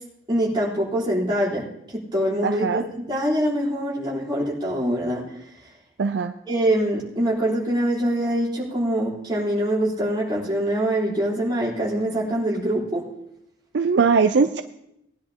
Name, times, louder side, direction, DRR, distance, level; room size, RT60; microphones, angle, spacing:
voice 1, 0.3-1.6 2.1-5.2 6.5-13.0, right 1 dB, 20° right, -6 dB, 3.8 m, -24 dB
voice 2, 2.4-2.8 6.0-6.3 13.7-14.6, right 5 dB, 60° right, 9 dB, 0.4 m, -20 dB
19.5 x 10.5 x 2.9 m, 0.79 s
head